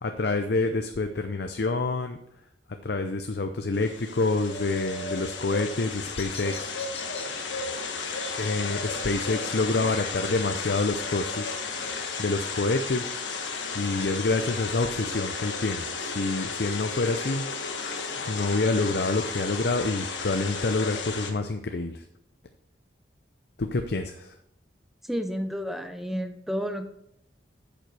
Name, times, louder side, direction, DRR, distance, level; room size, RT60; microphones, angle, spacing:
voice 1, 0.0-2.2 2.8-6.7 8.4-11.5 12.2-13.1 13.7-17.4 18.3-22.0 23.6-24.3, left 3 dB, 60° left, 6 dB, 0.6 m, -27 dB
sound 1, 3.7-21.3, left 4 dB, 85° left, 1.4 m, -33 dB
Bird vocalization bird call bird song, 5.7-11.6, left 5 dB, 35° left, 1.3 m, -48 dB
voice 2, 25.0-26.9, equal, ahead, 6 dB, 0.8 m, -31 dB
9.0 x 7.6 x 4.7 m, 0.74 s
head